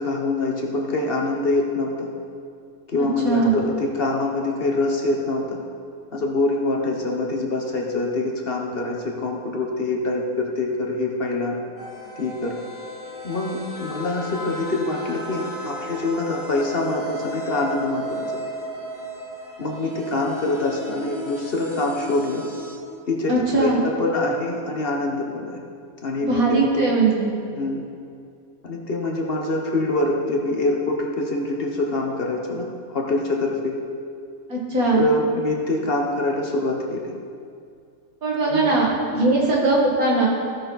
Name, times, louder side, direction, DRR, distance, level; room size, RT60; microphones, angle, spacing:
voice 1, 0.0-2.1 2.9-5.6 6.1-11.6 12.2-12.6 13.2-18.4 19.6-22.4 23.1-23.3 23.6-25.6 26.0-26.9 27.5-27.8 28.6-33.7 34.9-37.1 38.4-38.8, left 2 dB, 45° left, 0 dB, 1.2 m, -25 dB
voice 2, 3.0-3.5 23.3-23.8 26.2-27.3 34.5-35.0 38.2-40.3, right 3 dB, 85° right, -4 dB, 2.4 m, -20 dB
sound 1, 11.8-22.8, right 1 dB, 25° right, 1.4 m, -34 dB
15.0 x 6.3 x 4.0 m, 2.4 s
omnidirectional pair, 1.5 m